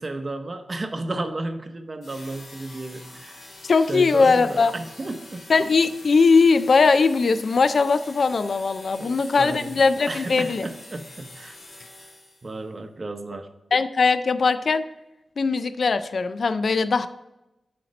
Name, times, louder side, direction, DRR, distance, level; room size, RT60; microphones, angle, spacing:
voice 1, 0.0-3.4 3.9-5.5 9.0-9.8 10.1-11.6 12.4-13.5, right 2 dB, 40° right, 8 dB, 0.7 m, -33 dB
sound 1, 2.0-12.6, left 2 dB, 90° left, 2.2 m, -45 dB
voice 2, 3.6-4.7 5.5-10.7 13.7-14.8 15.4-17.1, left 4 dB, 60° left, 12 dB, 0.3 m, -20 dB
7.9 x 4.3 x 5.1 m, 0.96 s
wide cardioid pair, 110°, 0 cm